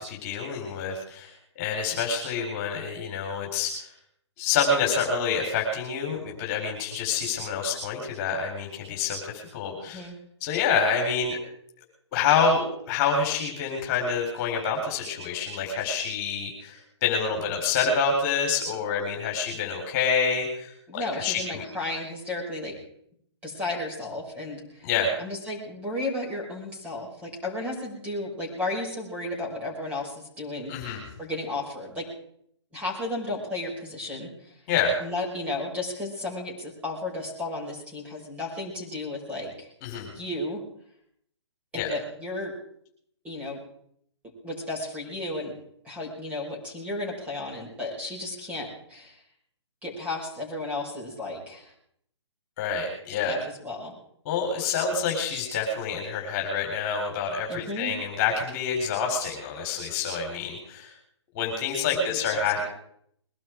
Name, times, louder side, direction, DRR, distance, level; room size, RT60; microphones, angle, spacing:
voice 1, 0.0-1.3 1.6-3.9 4.4-10.0 10.4-11.4 12.1-21.6 24.8-25.1 30.7-31.0 34.7-35.0 39.8-40.1 41.7-41.9 52.6-53.4 54.3-60.9 61.3-62.7, left 5 dB, 30° left, 1 dB, 4.2 m, -27 dB
voice 2, 9.9-10.2 20.9-22.8 23.4-24.8 25.2-32.1 32.7-34.5 35.0-39.7 40.1-40.6 41.7-42.5 43.2-43.6 44.4-45.5 45.8-49.2 49.8-51.7 53.3-53.9 57.5-57.9 61.9-62.1 62.3-62.7, left 2 dB, 10° right, -2 dB, 6.0 m, -34 dB
22.0 x 12.0 x 4.7 m, 0.68 s
hypercardioid pair, 150°, 15 cm